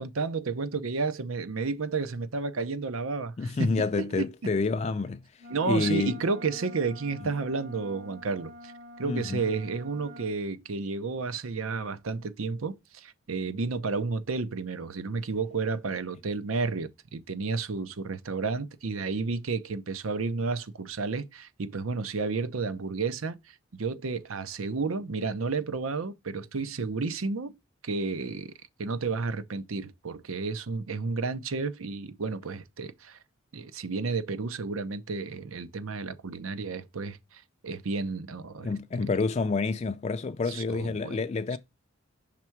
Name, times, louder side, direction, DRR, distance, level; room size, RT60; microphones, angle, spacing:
voice 1, 0.0-3.7 4.0-4.5 5.5-8.7 9.0-27.5 27.8-28.5 28.8-33.2 33.5-39.2 40.5-41.2 41.5-41.6, right 4 dB, 90° right, 0.7 m, -32 dB
voice 2, 3.4-6.2 7.2-7.3 9.0-9.4 38.6-41.6, left 4 dB, 30° left, 0.3 m, -28 dB
Wind instrument woodwind instrument, 5.4-10.3, left 1 dB, 60° right, 1.5 m, -47 dB
5.9 x 3.5 x 4.5 m
head